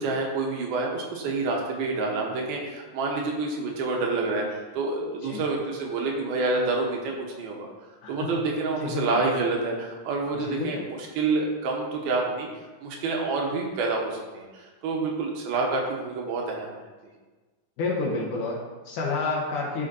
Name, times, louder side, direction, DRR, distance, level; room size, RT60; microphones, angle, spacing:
voice 1, 0.0-7.7 8.1-12.5 12.8-16.7, right 3 dB, 75° right, 0 dB, 2.5 m, -28 dB
voice 2, 8.0-9.2 10.3-10.9 17.8-19.9, left 3 dB, 75° left, -4 dB, 1.9 m, -30 dB
12.0 x 6.1 x 2.7 m, 1.3 s
omnidirectional pair, 5.2 m